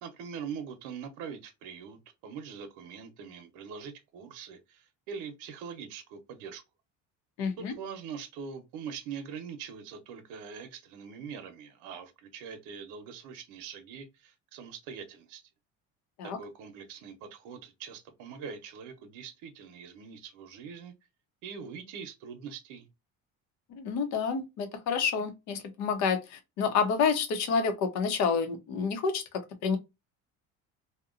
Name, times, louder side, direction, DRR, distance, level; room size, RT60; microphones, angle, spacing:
voice 1, 0.0-6.6 7.6-15.4 16.2-20.9 21.4-22.9, right 6 dB, 80° right, 0.7 m, -43 dB
voice 2, 7.4-7.7 16.2-16.4 23.7-29.2 29.6-29.8, left 5 dB, 65° left, 0.8 m, -29 dB
2.8 x 2.2 x 2.4 m
cardioid pair, 145°, 31 cm